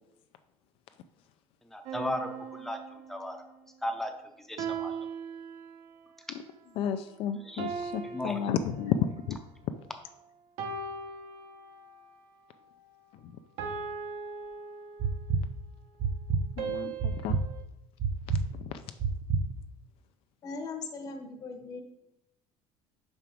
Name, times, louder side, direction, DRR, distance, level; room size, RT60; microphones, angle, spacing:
voice 1, 1.6-3.4 3.8-4.1 4.4-5.0 7.4-7.7 8.0-8.4, left 1 dB, 5° left, 5 dB, 0.6 m, -36 dB
sound 1, 1.9-3.5 4.6-6.1 7.6-9.3 10.6-12.1 13.6-15.3 16.6-17.6, right 5 dB, 70° right, 0.8 m, -39 dB
voice 2, 6.8-9.4 13.2-13.3 16.6-17.4 18.5-18.8, left 8 dB, 55° left, 9 dB, 0.4 m, -32 dB
sound 2, 15.0-15.4 16.0-16.4 17.0-17.4 18.0-18.4 19.0-19.4, right 6 dB, 35° right, 0.6 m, -27 dB
voice 3, 20.4-21.8, left 4 dB, 35° left, 5 dB, 0.9 m, -39 dB
5.9 x 5.3 x 4.5 m, 0.86 s
cardioid pair, 180°, 11 cm